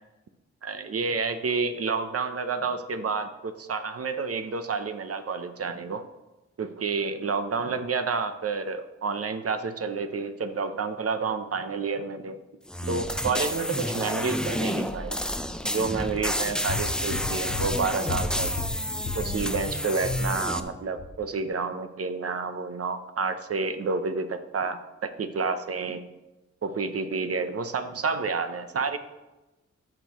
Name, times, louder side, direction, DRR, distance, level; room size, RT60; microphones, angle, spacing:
voice 1, 0.6-6.0 6.6-12.4 12.8-15.2 15.6-18.5 19.1-26.0 26.6-29.0, right 4 dB, 55° right, 9 dB, 0.7 m, -29 dB
sound 1, 12.7-20.6, equal, 5° left, 0.5 m, -30 dB
sound 2, 16.7-20.7 21.0-21.1, left 3 dB, 40° left, 0.8 m, -34 dB
13.5 x 6.5 x 3.0 m, 1.0 s
wide cardioid pair, 100°, 29 cm